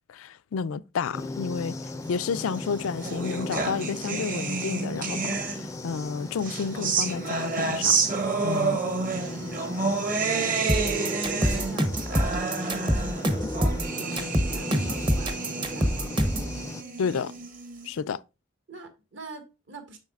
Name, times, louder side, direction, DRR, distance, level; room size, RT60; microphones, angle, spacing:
voice 1, 0.1-1.8 2.1-8.0 8.4-8.8 17.0-17.3 17.8-18.2, left 5 dB, 80° left, 0.4 m, -31 dB
sound 1, 1.1-16.8, left 1 dB, 15° left, 0.4 m, -37 dB
sound 2, 2.5-5.9 6.4-17.9, right 4 dB, 40° right, 1.3 m, -30 dB
voice 2, 8.7-9.2 10.2-16.2 18.7-20.0, right 1 dB, 60° right, 1.7 m, -43 dB
sound 3, 10.7-16.5, equal, 25° right, 0.8 m, -25 dB
7.3 x 6.3 x 2.4 m
head